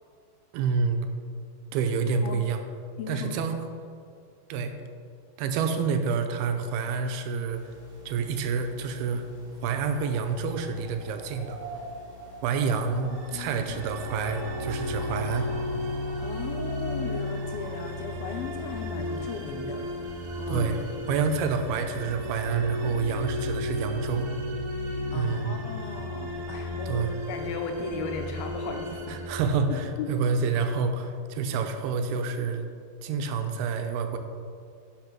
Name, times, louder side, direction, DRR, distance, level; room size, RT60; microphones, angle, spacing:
voice 1, 0.5-1.0 1.7-2.6 3.1-3.6 4.5-4.7 5.4-7.6 8.1-9.2 9.6-11.6 12.4-15.5 20.5-20.8 21.1-24.3 25.1-25.5 26.9-27.1 29.1-32.7 33.0-34.2, right 5 dB, 85° right, 6 dB, 2.7 m, -28 dB
voice 2, 2.0-2.4 3.0-3.4 4.5-4.7 13.1-14.0 16.2-19.9 20.4-20.7 25.1-29.2 30.0-30.1, left 5 dB, 80° left, 4 dB, 2.7 m, -37 dB
sound 1, 7.5-22.5, left 5 dB, 10° right, 1.9 m, -51 dB
sound 2, 9.5-19.3, right 2 dB, 45° right, 2.1 m, -46 dB
sound 3, 13.1-30.2, left 1 dB, 65° right, 2.0 m, -34 dB
11.0 x 6.0 x 6.0 m, 2.3 s
omnidirectional pair, 4.5 m